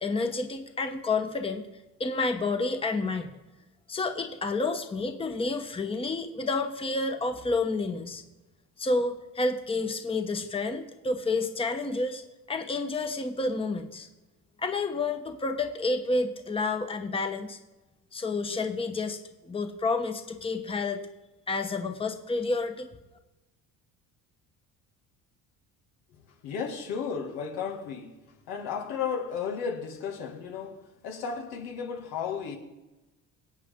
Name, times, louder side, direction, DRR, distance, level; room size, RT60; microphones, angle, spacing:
voice 1, 0.0-1.7 2.0-3.4 3.9-8.2 8.8-12.2 12.5-14.1 14.6-17.6 18.1-19.2 19.4-21.0 21.5-22.9, left 3 dB, 15° left, 1.0 m, -29 dB
voice 2, 26.4-28.2 28.5-32.6, left 6 dB, 90° left, 2.2 m, -34 dB
24.0 x 8.4 x 3.7 m
cardioid pair, 120°, 36 cm